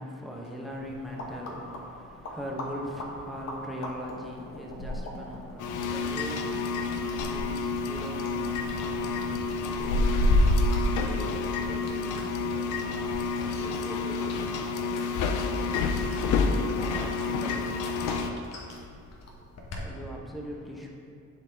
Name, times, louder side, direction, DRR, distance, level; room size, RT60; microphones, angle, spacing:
voice 1, 0.0-10.4 19.7-20.9, equal, ahead, -2 dB, 1.1 m, -40 dB
sound 1, 0.7-19.9, left 1 dB, 60° left, 1.1 m, -33 dB
sound 2, 5.6-18.3, left 4 dB, 80° left, 0.6 m, -30 dB
voice 2, 10.9-13.0 13.4-16.1 16.8-18.2, left 1 dB, 20° left, -3 dB, 0.8 m, -44 dB
10.5 x 4.1 x 3.6 m, 2.6 s
cardioid pair, 90°, 30 cm